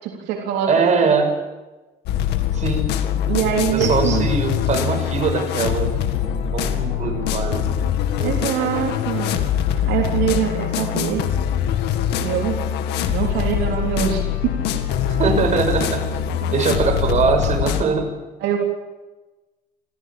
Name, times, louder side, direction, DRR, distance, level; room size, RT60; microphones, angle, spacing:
voice 1, 0.0-0.7 1.0-1.2 3.3-4.3 8.2-9.4 9.9-11.2 12.2-12.6 13.1-14.6 18.4-18.6, right 9 dB, 85° right, 0 dB, 3.8 m, -23 dB
voice 2, 0.7-1.3 2.5-2.9 3.7-5.9 6.2-7.8 8.2-8.9 15.1-16.0 16.3-18.1, right 5 dB, 45° right, 4 dB, 6.2 m, -22 dB
sound 1, 2.1-17.8, left 10 dB, 85° left, 2.0 m, -23 dB
26.5 x 15.5 x 8.8 m, 1.2 s
cardioid pair, 110°, 17 cm